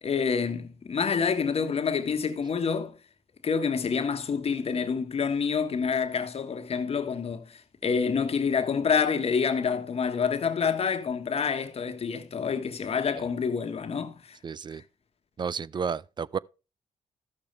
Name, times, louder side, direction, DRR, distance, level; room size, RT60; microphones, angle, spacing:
voice 1, 0.0-3.0 3.4-14.4 14.7-14.8, left 6 dB, 50° left, 1.3 m, -27 dB
voice 2, 14.4-14.8 15.4-16.4, right 6 dB, 35° right, 0.4 m, -31 dB
13.0 x 6.6 x 3.3 m
cardioid pair, 70°, 13 cm